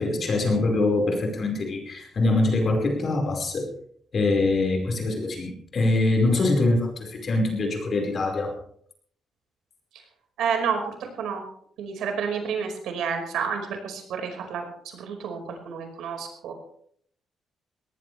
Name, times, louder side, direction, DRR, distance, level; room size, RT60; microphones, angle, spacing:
voice 1, 0.0-3.7 4.1-8.5, left 2 dB, 35° left, 1 dB, 5.0 m, -24 dB
voice 2, 10.4-11.4 11.8-16.5, right 6 dB, 80° right, 4 dB, 5.1 m, -30 dB
21.0 x 18.5 x 3.4 m, 0.63 s
cardioid pair, 165°, 0 cm